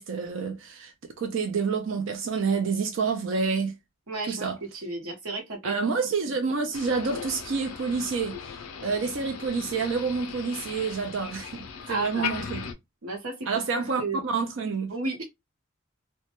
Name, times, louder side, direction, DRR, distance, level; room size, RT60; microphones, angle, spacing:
voice 1, 0.0-3.8 4.3-4.6 5.6-12.6 13.5-14.9, right 5 dB, 60° right, 0.4 m, -28 dB
voice 2, 4.1-6.0 11.9-12.2 13.0-13.3 14.0-14.2 14.9-15.2, right 3 dB, 90° right, 0.9 m, -33 dB
Motor vehicle (road), 6.7-12.7, left 6 dB, 90° left, 0.4 m, -38 dB
2.1 x 2.1 x 2.8 m
head